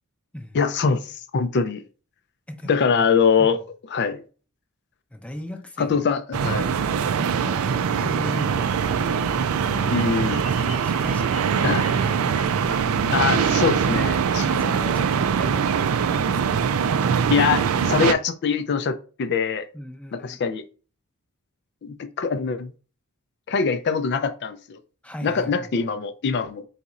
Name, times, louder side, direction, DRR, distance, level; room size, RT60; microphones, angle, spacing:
voice 1, 0.5-1.8 2.7-3.6 3.9-4.2 5.8-6.8 9.9-10.4 11.6-11.8 13.1-14.6 17.3-19.7 20.1-20.6 21.8-22.7 23.5-24.8 25.2-26.6, left 5 dB, 50° left, 0.4 m, -23 dB
voice 2, 2.5-3.1 3.4-3.6 5.1-6.0 6.4-9.1 9.6-12.7 14.5-16.6 19.7-20.4 25.0-25.9, left 1 dB, 5° left, 0.6 m, -38 dB
sound 1, 6.3-18.1, right 7 dB, 70° right, 0.4 m, -22 dB
sound 2, 8.4-13.8, left 2 dB, 80° left, 1.2 m, -40 dB
4.0 x 4.0 x 2.4 m
head